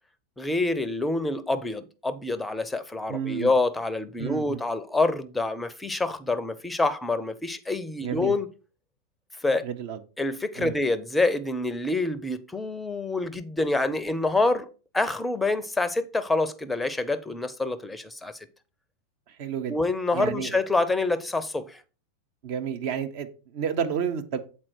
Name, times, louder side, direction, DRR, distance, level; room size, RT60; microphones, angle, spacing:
voice 1, 0.4-8.5 9.4-9.7 10.2-14.7 14.9-18.4 19.7-21.8, left 2 dB, 10° left, 0.6 m, -26 dB
voice 2, 3.1-3.5 4.2-4.6 8.0-8.3 9.6-10.0 10.6-10.7 19.3-19.8 20.1-20.6 22.4-24.4, right 8 dB, 45° right, 0.8 m, -31 dB
7.4 x 4.3 x 4.6 m
figure-of-eight pair, 90°, 0 cm